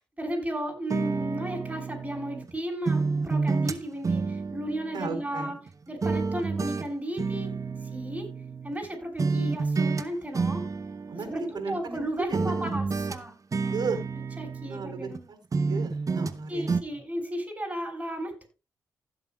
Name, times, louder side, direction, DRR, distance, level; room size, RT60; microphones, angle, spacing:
voice 1, 0.2-5.6 5.9-7.5 7.9-8.3 8.6-10.6 11.1-13.3 13.6-13.8 14.4-15.3 16.5-18.5, equal, 15° right, 1 dB, 7.1 m, -34 dB
sound 1, 0.9-2.5 2.9-5.7 6.0-8.9 9.2-10.1 10.3-12.0 12.3-15.2 15.5-16.4 16.7-16.8, right 4 dB, 45° right, 1.0 m, -30 dB
voice 2, 4.9-5.5 11.1-12.8 13.7-14.0 14.7-16.7, right 4 dB, 60° right, 8 dB, 4.2 m, -34 dB
16.0 x 7.9 x 2.4 m, 0.27 s
supercardioid pair, 50°, 8 cm